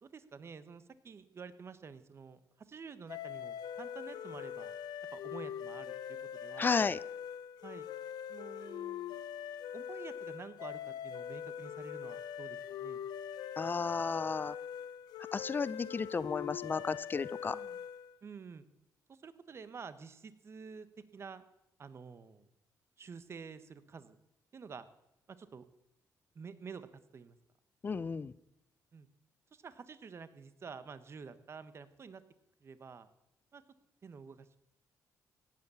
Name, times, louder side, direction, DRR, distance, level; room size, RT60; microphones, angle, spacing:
voice 1, 0.0-2.4 2.7-4.7 5.1-5.9 6.4-6.8 7.6-7.9 8.3-9.1 9.7-13.0 17.5-17.8 18.2-18.6 19.1-20.9 21.1-21.4 21.8-22.5 23.0-24.2 24.5-24.9 25.3-25.6 26.3-26.9 27.1-27.4 28.9-29.1 29.5-32.2 32.6-33.1 33.5-33.6 34.0-34.6, right 5 dB, 40° right, 13 dB, 1.1 m, -49 dB
sound 1, 3.1-18.2, left 9 dB, 85° left, 0.7 m, -43 dB
voice 2, 6.6-7.0 13.6-14.6 15.3-17.6 27.8-28.3, left 5 dB, 30° left, 19 dB, 0.5 m, -33 dB
17.5 x 8.2 x 6.9 m, 0.86 s
cardioid pair, 110°, 7 cm